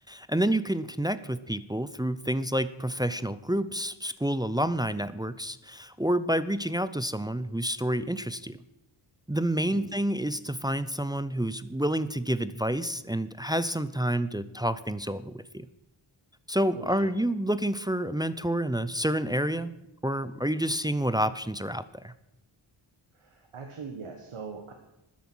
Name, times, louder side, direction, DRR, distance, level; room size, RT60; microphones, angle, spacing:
voice 1, 0.1-8.6 9.3-15.7 16.5-19.7 20.0-22.1, right 1 dB, 10° right, 14 dB, 0.5 m, -29 dB
voice 2, 16.7-17.2 23.1-24.7, right 5 dB, 90° right, 5 dB, 1.3 m, -41 dB
13.0 x 10.0 x 6.1 m, 0.92 s
wide cardioid pair, 85°, 48 cm